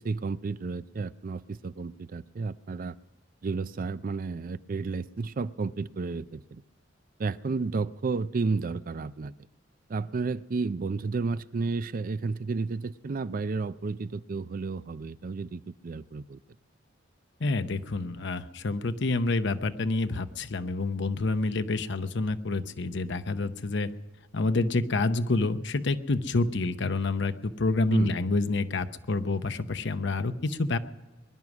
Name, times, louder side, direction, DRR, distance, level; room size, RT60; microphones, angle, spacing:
voice 1, 0.0-3.0 3.4-6.6 7.2-9.3 9.9-16.4 27.9-28.2, right 4 dB, 45° right, 16 dB, 0.4 m, -32 dB
voice 2, 17.4-23.9 24.3-30.8, left 3 dB, 65° left, 10 dB, 0.8 m, -28 dB
21.5 x 11.0 x 6.1 m, 1.2 s
head